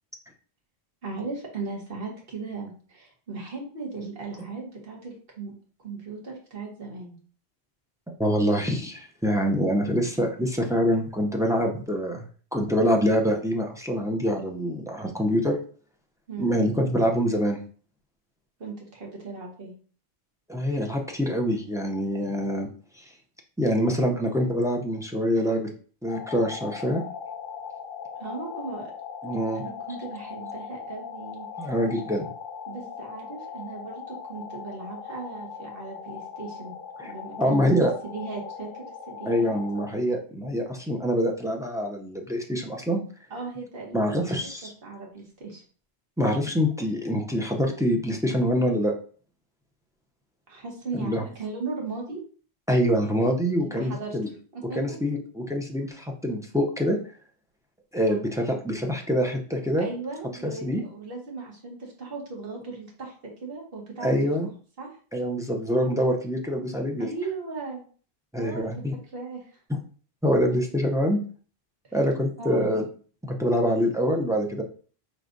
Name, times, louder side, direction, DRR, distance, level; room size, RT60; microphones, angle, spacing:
voice 1, 1.0-5.5 5.8-7.2 16.3-16.6 18.6-19.7 28.2-28.9 29.5-31.5 32.7-36.7 37.0-37.7 38.0-39.5 43.3-45.6 50.5-52.2 53.6-54.2 54.5-54.9 58.0-58.2 59.8-63.1 63.4-64.1 64.8-64.9 67.0-67.8 68.4-68.8 69.1-69.5 72.4-72.7, right 4 dB, 60° right, -1 dB, 1.4 m, -37 dB
voice 2, 8.2-12.3 12.5-15.6 16.4-17.6 20.5-22.7 23.0-23.1 23.6-25.7 26.0-27.0 29.2-29.6 31.6-32.2 37.0-37.9 39.3-43.0 43.9-44.7 46.2-48.9 50.9-51.2 52.7-54.3 54.8-57.0 57.9-59.9 60.4-60.8 64.0-64.5 65.1-67.1 68.3-68.9 69.7-69.8 70.2-71.2 71.9-72.8 73.2-74.6, equal, 5° right, 1 dB, 0.4 m, -25 dB
sound 1, 26.1-39.9, left 6 dB, 55° left, 1.0 m, -39 dB
4.6 x 3.3 x 2.6 m, 0.41 s
omnidirectional pair, 1.1 m